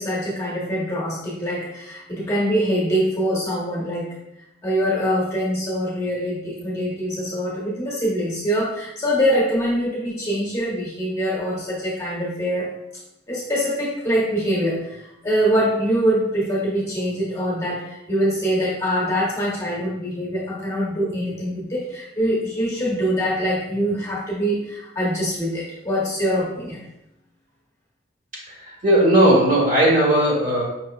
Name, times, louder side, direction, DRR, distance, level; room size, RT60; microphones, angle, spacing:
voice 1, 0.0-4.2 4.6-12.7 13.3-26.8, equal, 15° left, -6 dB, 0.8 m, -24 dB
voice 2, 28.6-30.6, right 1 dB, 45° right, -3 dB, 1.0 m, -17 dB
5.2 x 2.7 x 2.3 m, 0.86 s
head